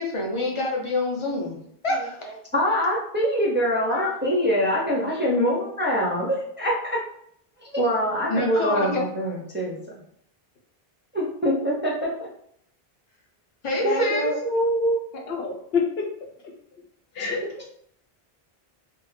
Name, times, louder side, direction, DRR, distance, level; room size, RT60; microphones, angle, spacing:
voice 1, 0.0-1.6 1.8-2.2 8.3-8.9 13.6-14.3, left 1 dB, 35° left, 0 dB, 0.6 m, -26 dB
voice 2, 2.5-7.0 7.7-9.8 11.1-12.1 13.8-14.1 14.4-15.0, equal, 15° right, -5 dB, 0.5 m, -24 dB
voice 3, 13.7-14.3 15.3-16.1 17.1-17.7, left 4 dB, 75° left, 1 dB, 0.9 m, -27 dB
3.5 x 2.1 x 3.2 m, 0.69 s
omnidirectional pair, 1.0 m